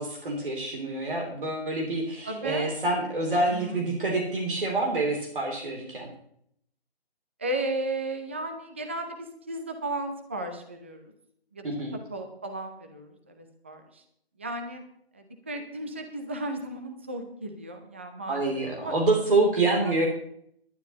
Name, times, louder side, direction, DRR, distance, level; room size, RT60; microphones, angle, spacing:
voice 1, 0.0-6.1 11.6-12.0 18.3-20.1, right 2 dB, 55° right, 0 dB, 3.1 m, -27 dB
voice 2, 2.2-2.7 3.5-3.8 7.4-11.0 11.5-11.7 12.1-14.0 14.4-14.8 15.1-18.4 18.8-18.9 19.6-20.0, right 2 dB, 10° right, 5 dB, 0.6 m, -34 dB
18.0 x 11.5 x 2.9 m, 0.69 s
figure-of-eight pair, 155°, 32 cm